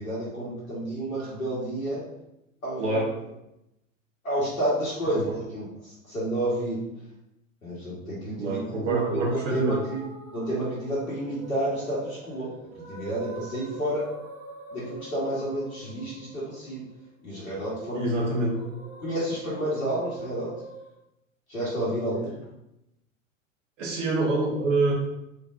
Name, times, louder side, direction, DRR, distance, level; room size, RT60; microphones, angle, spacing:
voice 1, 0.0-2.1 2.6-3.0 4.2-5.2 5.5-5.6 6.1-6.8 7.6-10.0 10.3-12.5 12.8-14.1 14.7-16.8 17.2-18.1 19.0-20.5 21.5-22.3, right 1 dB, 85° left, -8 dB, 1.5 m, -30 dB
voice 2, 2.8-3.2 5.1-5.3 8.4-9.8 17.9-18.5 23.8-24.9, right 2 dB, 65° right, -2 dB, 1.4 m, -26 dB
sound 1, 8.9-21.0, right 3 dB, 45° right, 1.2 m, -44 dB
4.0 x 3.5 x 2.5 m, 0.85 s
figure-of-eight pair, 90°, 40 cm